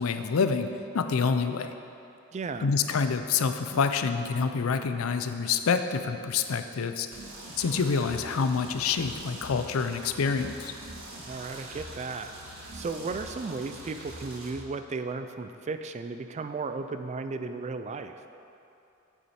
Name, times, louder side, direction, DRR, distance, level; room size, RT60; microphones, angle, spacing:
voice 1, 0.0-1.7 2.6-7.1 7.6-10.7, left 5 dB, 85° left, 9 dB, 0.5 m, -27 dB
voice 2, 2.3-2.7 11.3-12.3 12.7-18.2, right 4 dB, 35° right, 9 dB, 0.3 m, -35 dB
sound 1, 7.1-14.5, right 1 dB, 70° right, 1.5 m, -43 dB
8.5 x 7.2 x 4.3 m, 2.7 s
head